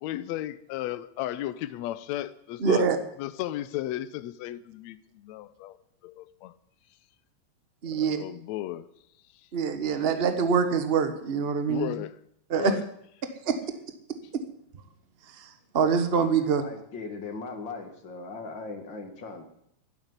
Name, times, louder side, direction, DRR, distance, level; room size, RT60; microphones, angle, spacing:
voice 1, 0.0-2.9 3.2-5.8 6.0-6.5 7.9-8.9 11.7-12.1 12.6-12.9, left 14 dB, 75° left, 2.0 m, -34 dB
voice 2, 2.6-3.0 7.8-8.2 9.5-11.9 12.5-12.7 13.4-13.6 14.3-14.4 15.4-16.6, right 6 dB, 35° right, 0.9 m, -25 dB
voice 3, 16.4-19.4, left 4 dB, 40° left, 2.6 m, -39 dB
12.0 x 11.0 x 9.7 m
omnidirectional pair, 3.3 m